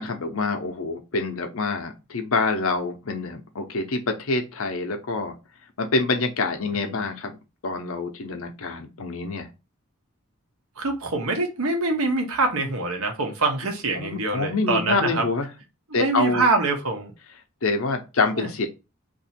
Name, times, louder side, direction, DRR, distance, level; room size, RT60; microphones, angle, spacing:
voice 1, 0.0-5.3 5.8-7.3 7.6-9.5 13.9-15.5 15.9-16.5 17.6-18.7, left 3 dB, 75° left, 5 dB, 0.8 m, -26 dB
voice 2, 6.7-7.0 10.8-15.2 15.9-17.1 18.3-18.5, right 3 dB, 90° right, 4 dB, 1.0 m, -25 dB
2.9 x 2.7 x 4.2 m, 0.28 s
head